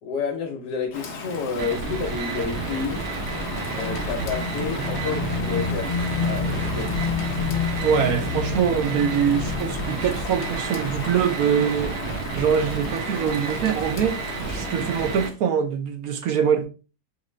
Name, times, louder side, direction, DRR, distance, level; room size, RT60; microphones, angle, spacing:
voice 1, 0.0-3.0 3.7-5.9 6.2-6.9, left 5 dB, 70° left, 1.2 m, -30 dB
Rain, 0.9-15.3, left 3 dB, 50° left, 0.8 m, -35 dB
sound 1, 1.6-15.3, right 5 dB, 85° right, 1.5 m, -32 dB
Motorcycle / Engine, 3.1-11.4, left 5 dB, 85° left, 1.3 m, -30 dB
voice 2, 7.8-12.0 12.4-14.2 14.5-16.7, right 8 dB, 70° right, 0.9 m, -23 dB
4.8 x 3.1 x 3.1 m
omnidirectional pair, 2.0 m